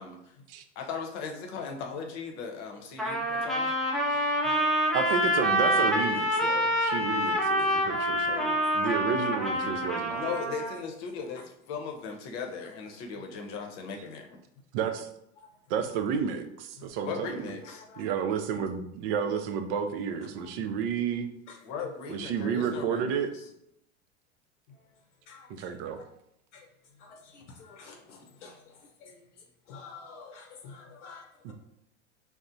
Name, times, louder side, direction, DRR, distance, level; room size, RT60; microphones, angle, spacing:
voice 1, 0.0-0.3 0.8-3.7 10.1-14.4 17.0-17.8 21.6-23.2, left 5 dB, 50° left, 3 dB, 0.7 m, -38 dB
Trumpet, 3.0-10.8, equal, ahead, 0.5 m, -27 dB
voice 2, 4.9-10.3 14.7-15.1 15.7-17.5 18.0-21.3 22.1-23.3 25.5-26.0 31.4-31.5, right 7 dB, 55° right, 7 dB, 0.5 m, -31 dB
voice 3, 27.0-28.5 29.0-29.2 29.7-31.5, left 5 dB, 80° left, 2 dB, 0.7 m, -48 dB
4.2 x 2.1 x 2.6 m, 0.78 s
hypercardioid pair, 95°, 35 cm